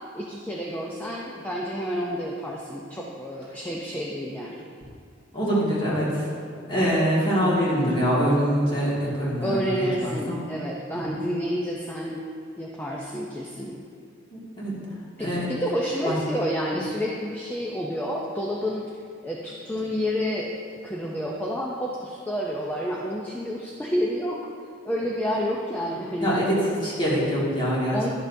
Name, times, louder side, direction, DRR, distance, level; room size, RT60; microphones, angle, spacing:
voice 1, 0.1-4.7 9.4-12.2 12.6-13.8 14.9-18.9 19.2-20.5 20.8-24.4 24.8-26.5 27.9-28.1, equal, 10° left, -3 dB, 0.5 m, -29 dB
voice 2, 5.3-6.3 6.7-10.4 10.9-11.1 14.3-14.7 15.2-15.5 16.0-16.1 26.2-28.1, equal, 25° left, -7 dB, 2.0 m, -24 dB
11.5 x 6.6 x 2.7 m, 2.2 s
head